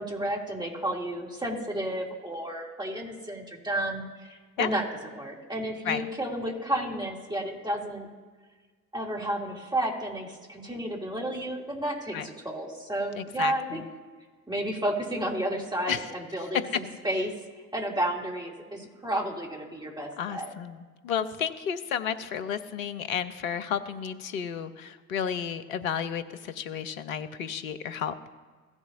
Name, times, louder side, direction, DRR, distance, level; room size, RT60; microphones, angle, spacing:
voice 1, 0.0-4.8 5.2-8.1 8.9-13.8 14.5-17.3 17.7-20.5, right 1 dB, 10° right, -2 dB, 2.8 m, -32 dB
voice 2, 13.1-13.8 15.9-16.1 20.2-28.2, left 8 dB, 75° left, 10 dB, 0.8 m, -32 dB
16.5 x 7.1 x 2.7 m, 1.4 s
figure-of-eight pair, 50°, 42 cm